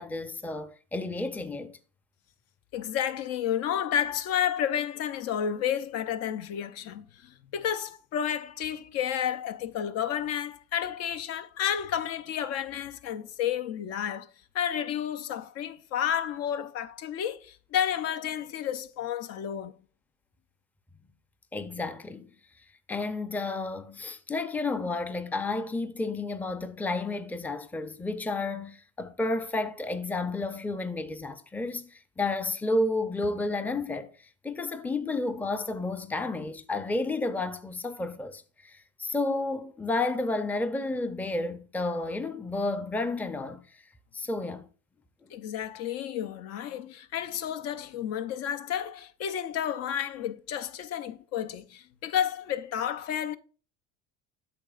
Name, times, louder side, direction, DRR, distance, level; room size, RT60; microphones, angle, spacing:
voice 1, 0.0-1.7 21.5-22.3 22.9-34.1 34.4-43.6 44.1-44.7, left 2 dB, 5° left, 0.5 m, -31 dB
voice 2, 2.7-14.3 14.5-19.7 45.3-53.4, left 9 dB, 55° left, 0.6 m, -31 dB
8.7 x 6.6 x 2.4 m
supercardioid pair, 100°, 29 cm